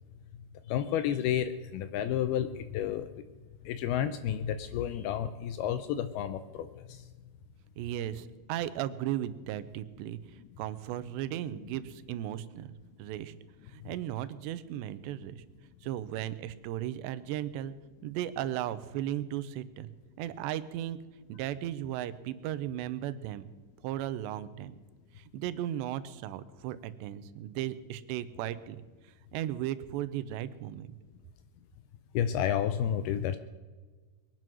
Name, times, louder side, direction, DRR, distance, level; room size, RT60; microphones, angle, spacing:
voice 1, 0.7-3.2 3.7-7.1 32.1-33.4, left 10 dB, 80° left, 10 dB, 2.3 m, -31 dB
voice 2, 7.8-10.2 10.6-12.7 13.0-13.3 13.7-15.4 15.8-17.7 18.0-19.9 20.2-21.0 21.3-23.4 23.8-24.7 25.2-28.8 29.3-30.9, right 12 dB, 90° right, 14 dB, 2.9 m, -36 dB
22.0 x 9.2 x 6.2 m, 1.4 s
omnidirectional pair, 5.0 m